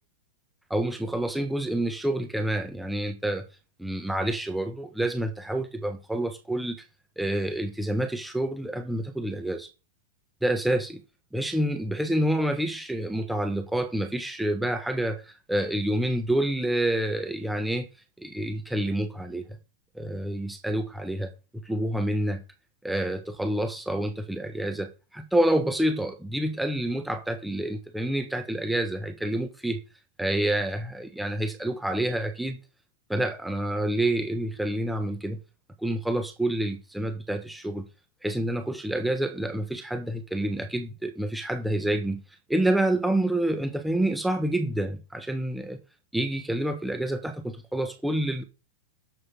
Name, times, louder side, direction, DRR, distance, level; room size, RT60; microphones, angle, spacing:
voice 1, 0.7-3.5 3.8-6.8 7.2-9.7 10.4-11.0 11.3-17.9 18.2-19.4 19.9-22.4 22.8-29.8 30.2-32.6 33.1-35.4 35.8-37.8 38.2-42.2 42.5-45.8 46.1-48.4, right 1 dB, 5° right, 1.2 m, -28 dB
7.4 x 6.5 x 5.6 m
supercardioid pair, 145°, 0 cm